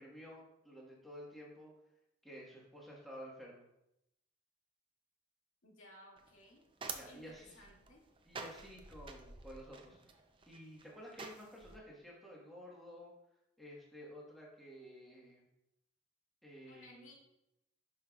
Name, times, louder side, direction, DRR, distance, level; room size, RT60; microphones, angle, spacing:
voice 1, 0.0-1.7 2.2-3.7 6.9-7.6 8.2-10.1 10.5-13.1 13.6-15.4 16.4-17.1, equal, ahead, -4 dB, 1.5 m, -52 dB
voice 2, 5.6-6.6 7.0-8.0 16.7-17.1, left 1 dB, 85° left, -3 dB, 2.2 m, -58 dB
sound 1, 6.2-11.8, right 4 dB, 25° right, 0.6 m, -49 dB
11.0 x 5.5 x 2.4 m, 0.85 s
head